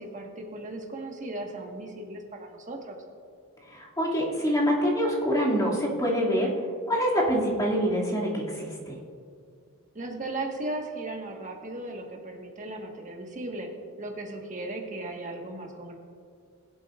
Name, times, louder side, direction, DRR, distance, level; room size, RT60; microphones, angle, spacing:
voice 1, 0.0-3.0 9.9-13.7 14.0-16.0, right 2 dB, 35° right, 1 dB, 1.5 m, -36 dB
voice 2, 3.7-6.5 6.9-9.0, equal, 15° left, -5 dB, 2.4 m, -25 dB
22.5 x 7.8 x 2.5 m, 2.3 s
head